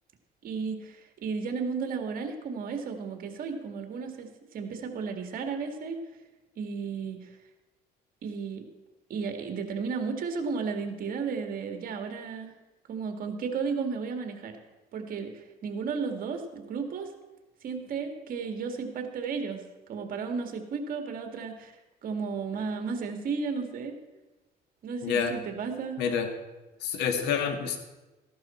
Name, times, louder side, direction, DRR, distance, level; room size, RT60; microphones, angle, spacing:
voice 1, 0.4-6.0 6.6-7.3 8.2-8.7 9.1-12.5 12.9-14.6 14.9-17.1 17.6-19.6 19.9-21.7 22.0-23.9 24.8-26.0, right 5 dB, 55° right, 5 dB, 1.7 m, -33 dB
voice 2, 25.0-25.3 26.0-26.3 26.8-27.8, left 7 dB, 85° left, 6 dB, 1.6 m, -27 dB
14.5 x 11.5 x 4.3 m, 1.1 s
cardioid pair, 110°, 17 cm